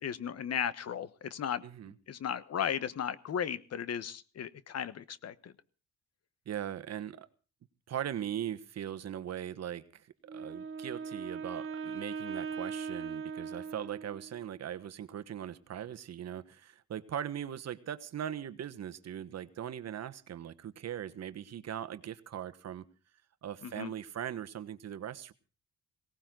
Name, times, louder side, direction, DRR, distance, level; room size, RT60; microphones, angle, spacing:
voice 1, 0.0-5.5 23.6-23.9, left 8 dB, 55° left, 15 dB, 1.2 m, -36 dB
voice 2, 6.5-7.3 7.9-22.8 23.4-25.3, right 10 dB, 60° right, 13 dB, 1.3 m, -40 dB
Wind instrument woodwind instrument, 10.3-14.5, right 6 dB, 45° right, 2.0 m, -40 dB
18.5 x 18.0 x 3.9 m, 0.37 s
cardioid pair, 90°, 30 cm